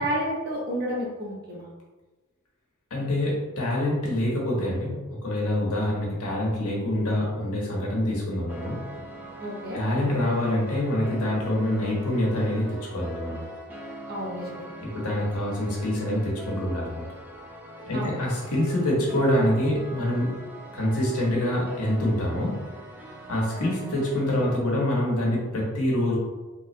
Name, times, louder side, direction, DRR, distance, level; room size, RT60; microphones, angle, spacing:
voice 1, 0.0-1.7 9.4-9.8 14.1-14.7 17.9-18.2, equal, 45° right, -3 dB, 1.0 m, -30 dB
voice 2, 2.9-8.8 9.7-13.5 14.8-17.1 17.9-20.4 20.7-22.6 23.3-26.2, left 1 dB, 90° left, -3 dB, 1.2 m, -26 dB
sound 1, 8.5-24.6, right 1 dB, 10° right, 0.6 m, -42 dB
3.5 x 2.9 x 3.2 m, 1.2 s
head